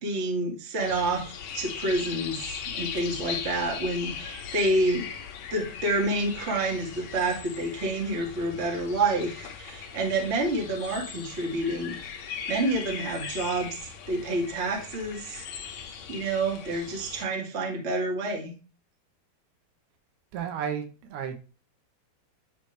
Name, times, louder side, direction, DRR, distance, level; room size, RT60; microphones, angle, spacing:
voice 1, 0.0-5.0 5.5-12.0 12.5-15.4 16.1-18.5, right 2 dB, 25° right, 1.5 m, -28 dB
sound 1, 0.8-17.3, left 7 dB, 60° left, 1.9 m, -39 dB
voice 2, 20.3-21.5, right 8 dB, 75° right, 3.1 m, -33 dB
10.5 x 4.8 x 3.3 m
omnidirectional pair, 4.7 m